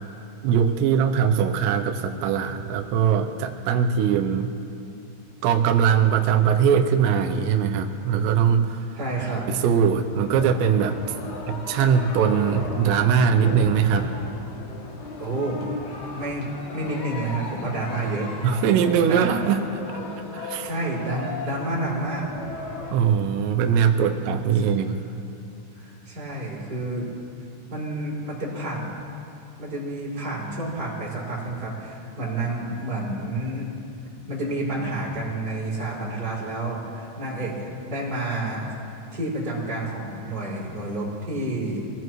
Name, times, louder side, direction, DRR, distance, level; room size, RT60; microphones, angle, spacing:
voice 1, 0.4-4.5 5.4-8.9 9.5-11.0 11.5-14.1 18.4-19.8 20.3-20.7 22.9-25.0, right 7 dB, 80° right, 4 dB, 2.6 m, -21 dB
voice 2, 9.0-9.4 15.2-15.7 16.2-16.5 16.7-18.3 19.1-19.3 20.6-22.3 25.7-27.1 27.7-28.9 29.6-33.7 34.3-38.7 39.1-41.9, right 2 dB, 20° right, -7 dB, 5.2 m, -29 dB
sound 1, 10.1-22.9, left 2 dB, 75° left, 1.7 m, -36 dB
24.0 x 17.0 x 3.1 m, 2.5 s
omnidirectional pair, 5.7 m